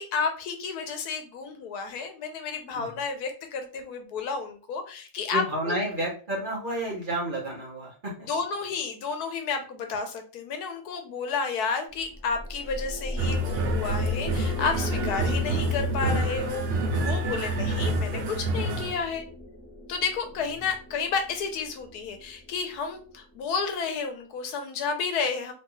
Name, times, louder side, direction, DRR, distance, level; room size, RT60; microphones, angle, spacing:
voice 1, 0.0-5.7 8.2-19.2 19.9-25.5, left 5 dB, 85° left, 6 dB, 1.2 m, -31 dB
voice 2, 5.3-8.3 14.8-14.9 17.3-17.7, right 1 dB, 40° right, -4 dB, 0.8 m, -31 dB
sound 1, 11.9-23.4, left 1 dB, 15° left, 0.8 m, -38 dB
sound 2, 13.2-19.0, right 1 dB, 80° right, 0.5 m, -27 dB
3.1 x 2.3 x 3.0 m, 0.37 s
omnidirectional pair, 1.6 m